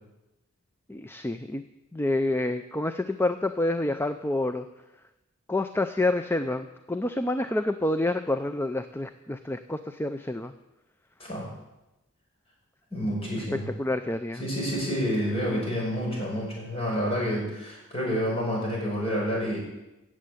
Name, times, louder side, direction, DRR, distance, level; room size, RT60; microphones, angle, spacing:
voice 1, 0.9-1.6 1.9-4.7 5.5-10.5 13.5-14.4, left 2 dB, 10° left, 9 dB, 0.4 m, -28 dB
voice 2, 12.9-13.7 14.4-19.6, equal, 30° left, -3 dB, 5.7 m, -29 dB
15.5 x 7.6 x 8.5 m, 0.98 s
head